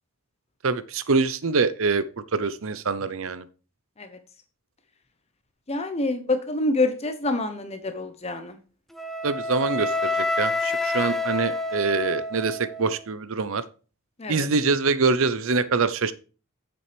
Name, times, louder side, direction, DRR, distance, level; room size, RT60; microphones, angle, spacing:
voice 1, 0.6-2.0 2.3-3.5 9.2-13.6 14.3-16.1, right 4 dB, 65° right, 14 dB, 0.7 m, -24 dB
voice 2, 5.7-8.6 14.2-14.5, left 2 dB, 30° left, 8 dB, 0.8 m, -27 dB
Wind instrument woodwind instrument, 9.0-13.0, left 2 dB, ahead, 0.5 m, -28 dB
8.7 x 7.7 x 3.3 m, 0.35 s
head